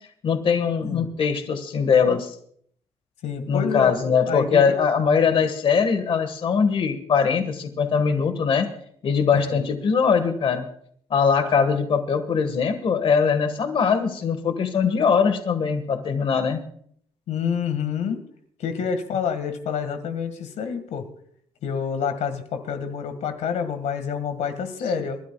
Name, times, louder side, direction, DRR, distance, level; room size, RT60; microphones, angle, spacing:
voice 1, 0.2-2.3 3.5-8.7 9.0-10.7 11.1-16.6, left 6 dB, 50° left, 9 dB, 1.6 m, -21 dB
voice 2, 3.2-4.6 5.3-5.4 9.4-9.6 17.3-18.2 18.6-21.0 21.6-25.2, left 7 dB, 85° left, 8 dB, 1.9 m, -28 dB
29.5 x 12.5 x 2.3 m, 0.63 s
cardioid pair, 140°, 12 cm